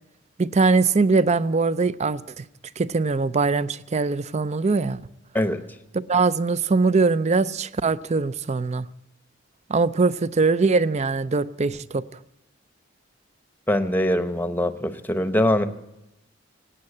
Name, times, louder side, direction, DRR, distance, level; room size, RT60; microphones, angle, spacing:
voice 1, 0.4-2.4 2.8-5.0 5.9-8.9 9.7-12.0, right 4 dB, 35° right, 0.5 m, -22 dB
voice 2, 13.7-15.7, left 1 dB, 10° left, 0.9 m, -22 dB
18.0 x 8.9 x 8.4 m
head